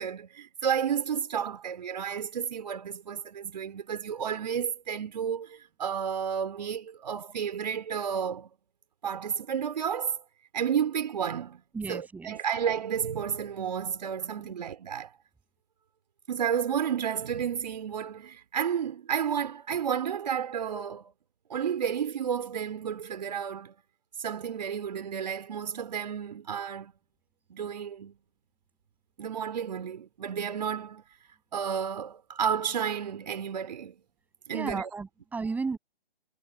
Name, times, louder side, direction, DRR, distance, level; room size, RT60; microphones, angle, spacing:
voice 1, 0.0-8.5 9.0-10.2 10.5-11.6 11.9-15.1 16.3-21.1 21.5-23.7 24.2-26.9 27.5-28.2 29.2-31.0 31.5-33.9 34.5-34.9, right 8 dB, 45° right, 3.9 m, -31 dB
voice 2, 11.7-12.4 14.4-14.5 34.5-35.8, right 4 dB, 5° right, 8.0 m, -34 dB
figure-of-eight pair, 135°, 29 cm